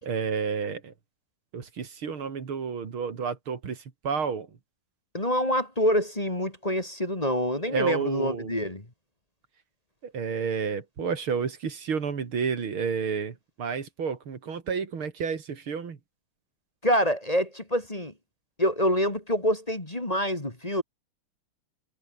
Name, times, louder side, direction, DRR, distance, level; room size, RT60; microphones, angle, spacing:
voice 1, 0.0-0.9 1.5-4.5 7.7-8.5 10.0-16.0, right 6 dB, 70° right, 3.3 m, -30 dB
voice 2, 5.1-8.8 16.8-18.1 18.6-20.8, equal, 15° left, 2.8 m, -26 dB
omnidirectional pair, 2.4 m